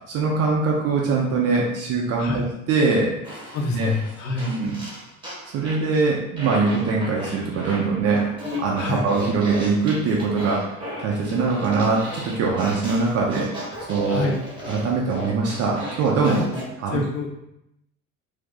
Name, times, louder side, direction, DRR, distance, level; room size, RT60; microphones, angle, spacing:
voice 1, 0.1-3.1 3.7-3.9 4.5-4.8 5.5-8.3 8.6-10.6 11.0-13.5 13.9-14.2 14.7-16.4 16.8-17.0, right 4 dB, 35° right, -3 dB, 0.6 m, -22 dB
Fart, 3.2-5.9 6.4-16.7, left 1 dB, 10° right, 1.2 m, -35 dB
voice 2, 3.5-4.5 8.8-9.0 14.1-14.3 16.2-16.4 16.9-17.3, left 4 dB, 40° left, 0 dB, 0.8 m, -26 dB
2.6 x 2.3 x 3.7 m, 0.81 s
figure-of-eight pair, 65°, 44 cm